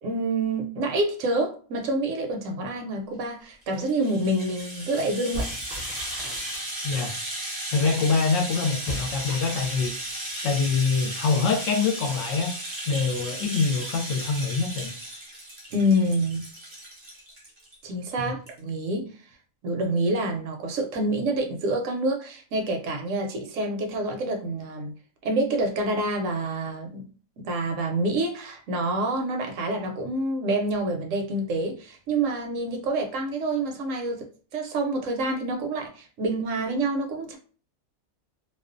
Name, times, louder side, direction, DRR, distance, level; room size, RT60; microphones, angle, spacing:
voice 1, 0.0-5.5 15.7-16.4 17.8-19.1 19.6-24.9 25.2-27.1 27.4-37.4, right 1 dB, 70° right, 3 dB, 0.9 m, -27 dB
Rattle (instrument), 3.6-17.7 18.1-18.2 18.5-18.6, right 1 dB, 35° right, 0.4 m, -35 dB
sound 1, 5.3-7.1 8.8-9.9, equal, 30° left, 0.8 m, -37 dB
voice 2, 7.7-9.9 10.4-12.5 12.9-14.9 18.2-18.3, left 4 dB, 70° left, 2 dB, 0.9 m, -25 dB
2.4 x 2.1 x 2.4 m, 0.40 s
omnidirectional pair, 1.4 m